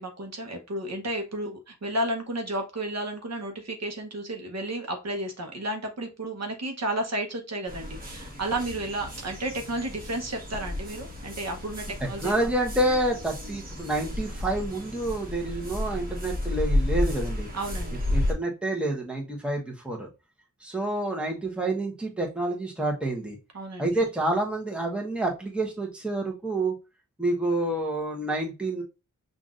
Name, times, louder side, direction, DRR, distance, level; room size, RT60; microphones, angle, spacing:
voice 1, 0.0-12.5 17.5-18.0 23.5-23.9, right 1 dB, 55° right, 4 dB, 0.9 m, -32 dB
sound 1, 7.7-18.3, left 1 dB, 30° right, 1.2 m, -32 dB
voice 2, 12.0-17.5 18.1-20.1 20.6-23.4 23.8-26.7 27.2-28.8, right 1 dB, 5° right, 0 dB, 1.0 m, -28 dB
5.8 x 2.6 x 2.4 m, 0.27 s
wide cardioid pair, 85°, 31 cm